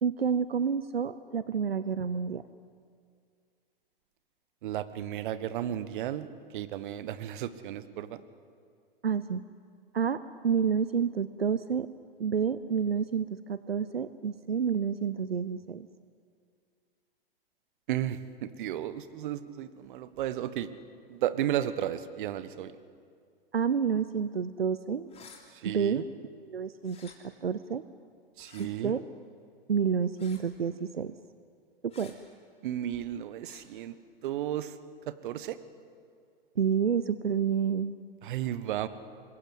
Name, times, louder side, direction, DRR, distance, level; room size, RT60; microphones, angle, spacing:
voice 1, 0.0-2.4 9.0-9.4 9.9-11.9 12.2-15.9 23.5-25.1 25.7-26.0 26.4-27.8 28.6-29.0 29.7-31.1 31.8-32.1 36.6-38.0, right 7 dB, 90° right, 14 dB, 0.7 m, -29 dB
voice 2, 4.6-6.3 6.5-8.2 17.9-20.7 21.1-22.7 25.6-26.0 28.4-28.9 32.6-33.9 34.2-34.7 35.1-35.6 38.2-38.9, right 11 dB, 55° right, 14 dB, 1.4 m, -33 dB
sound 1, 25.1-25.4 26.8-27.2 28.4-28.7 30.2-30.5 31.9-32.1 33.4-33.7, left 6 dB, 20° left, 3.4 m, -52 dB
26.0 x 21.5 x 8.1 m, 2.2 s
figure-of-eight pair, 105°, 29 cm